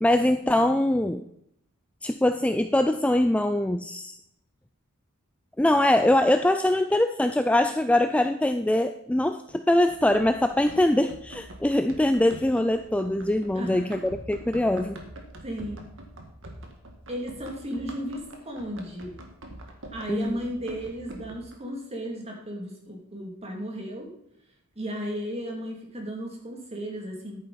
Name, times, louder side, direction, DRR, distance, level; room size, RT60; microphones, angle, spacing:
voice 1, 0.0-1.2 2.0-4.2 5.6-15.0 20.1-20.4, left 1 dB, 5° left, 8 dB, 0.3 m, -23 dB
Run, 9.9-21.6, right 1 dB, 60° right, 1.8 m, -44 dB
voice 2, 13.5-13.9 15.4-15.8 17.1-19.2 19.9-24.1 24.8-27.4, equal, 30° right, 0 dB, 2.6 m, -34 dB
11.0 x 9.2 x 4.1 m, 0.75 s
head